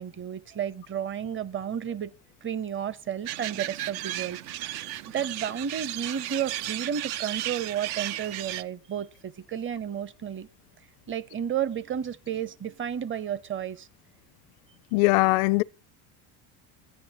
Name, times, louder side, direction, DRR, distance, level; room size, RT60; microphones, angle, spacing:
voice 1, 0.0-2.1 2.4-4.7 5.1-10.5 11.1-13.9, right 9 dB, 30° right, 0.7 m, -32 dB
sound 1, 3.2-8.6, right 13 dB, 65° right, 0.6 m, -34 dB
voice 2, 14.9-15.6, left 23 dB, 75° left, 0.6 m, -21 dB
10.5 x 9.5 x 4.7 m
supercardioid pair, 90°, 43 cm